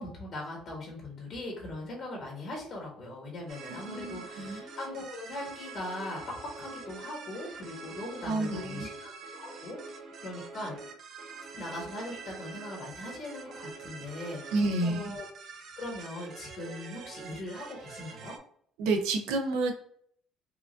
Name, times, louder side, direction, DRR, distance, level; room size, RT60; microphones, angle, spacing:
voice 1, 0.0-9.8 10.2-10.8 11.5-15.2 15.7-18.3, left 1 dB, 45° left, -2 dB, 1.5 m, -40 dB
sound 1, 3.5-18.4, right 4 dB, 45° right, 0.6 m, -45 dB
voice 2, 3.7-4.7 8.3-8.9 14.5-15.1 18.8-19.7, right 2 dB, 85° right, 4 dB, 0.8 m, -30 dB
4.7 x 2.5 x 2.5 m, 0.62 s
cardioid pair, 150°, 0 cm